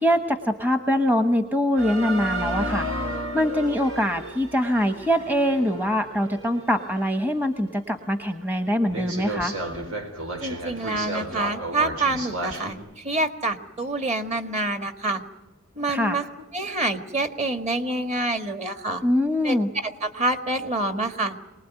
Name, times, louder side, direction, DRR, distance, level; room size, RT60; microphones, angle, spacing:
voice 1, 0.0-2.9 3.3-9.5 15.9-16.2 19.0-19.7, equal, 10° right, 7 dB, 1.0 m, -23 dB
sound 1, 1.8-7.2 7.7-7.8 8.3-8.4 8.9-12.7, right 1 dB, 85° right, 4.1 m, -32 dB
voice 2, 10.4-15.2 15.7-16.2 16.5-19.0 19.4-21.3, right 2 dB, 35° right, 7 dB, 1.8 m, -27 dB
24.0 x 19.5 x 9.1 m, 1.1 s
head